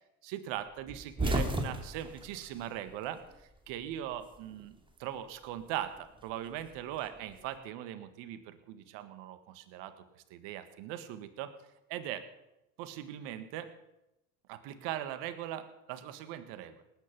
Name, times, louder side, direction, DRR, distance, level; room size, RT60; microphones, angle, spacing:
voice 1, 0.2-3.2 3.7-4.7 5.0-11.5 11.9-12.3 12.8-13.7 14.5-16.8, right 11 dB, 70° right, 10 dB, 1.8 m, -40 dB
sound 1, 0.9-3.4 3.7-4.8 6.0-7.4, right 1 dB, 10° right, 2.7 m, -35 dB
19.0 x 9.5 x 6.0 m, 0.87 s
hypercardioid pair, 75°, 44 cm